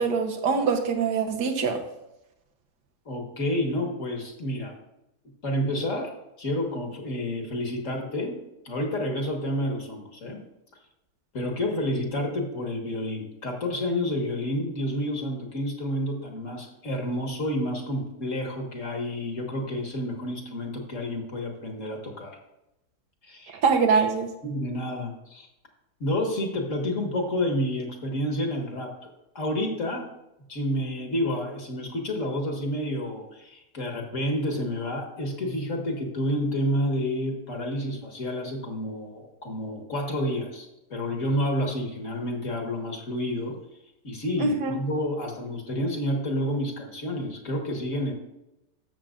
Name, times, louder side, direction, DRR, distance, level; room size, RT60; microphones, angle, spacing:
voice 1, 0.0-1.8 23.5-24.3 44.4-44.7, right 5 dB, 80° right, 4 dB, 1.7 m, -23 dB
voice 2, 3.1-4.8 5.4-6.1 6.4-10.4 11.3-22.4 23.2-23.6 24.4-25.5 26.0-28.9 29.4-30.1 30.5-43.6 44.0-48.1, left 1 dB, 50° left, 2 dB, 1.8 m, -29 dB
12.5 x 7.3 x 2.5 m, 0.90 s
omnidirectional pair, 1.8 m